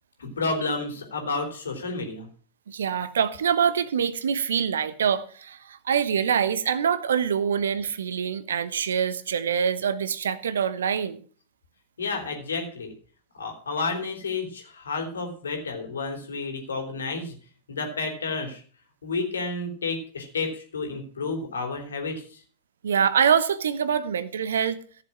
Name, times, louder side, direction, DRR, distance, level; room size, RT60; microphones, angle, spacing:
voice 1, 0.2-2.3 12.0-12.9 13.3-17.3 17.7-18.6 19.0-22.4, left 3 dB, 70° left, 3.2 m, -31 dB
voice 2, 2.7-11.2 22.8-24.8, right 7 dB, 65° right, 1.0 m, -25 dB
15.0 x 6.9 x 5.9 m
figure-of-eight pair, 90°, 0 cm